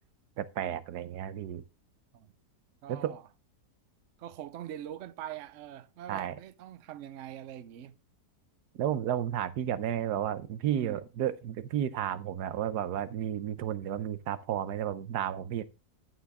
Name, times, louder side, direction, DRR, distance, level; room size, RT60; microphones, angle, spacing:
voice 1, 0.4-1.6 2.9-3.1 6.1-6.3 8.8-15.6, right 10 dB, 85° right, 1.3 m, -32 dB
voice 2, 2.8-3.2 4.2-8.0 10.7-11.0, right 11 dB, 60° right, 0.9 m, -43 dB
11.0 x 7.2 x 3.5 m
omnidirectional pair, 1.7 m